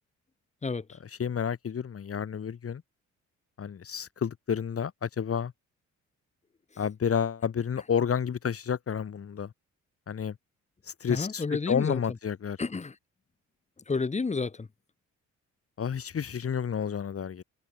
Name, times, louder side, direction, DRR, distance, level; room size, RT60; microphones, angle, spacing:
voice 1, 0.6-1.0 11.1-12.0 12.6-13.0 13.9-14.7, left 4 dB, 25° left, 1.7 m, -30 dB
voice 2, 1.2-2.8 3.6-5.5 6.8-9.5 10.1-10.3 11.0-12.6 15.8-17.4, left 7 dB, 50° left, 4.6 m, -30 dB
cardioid pair, 90°, 30 cm